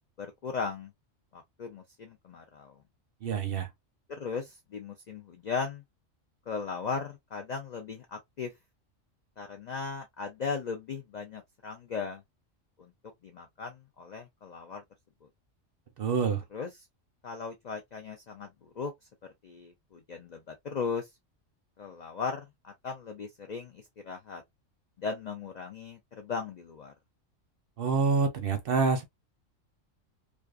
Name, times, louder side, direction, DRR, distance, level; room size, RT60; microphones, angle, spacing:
voice 1, 0.2-0.9 1.3-2.7 4.1-5.8 6.5-8.5 9.4-12.2 12.8-12.9 13.2-14.8 16.5-16.9 17.2-18.9 19.4-21.1 21.8-24.4 25.0-26.9, left 5 dB, 70° left, 0.4 m, -37 dB
voice 2, 3.2-3.7 16.0-16.4 27.8-29.0, right 5 dB, 60° right, 0.6 m, -27 dB
2.4 x 2.3 x 2.2 m
omnidirectional pair, 1.3 m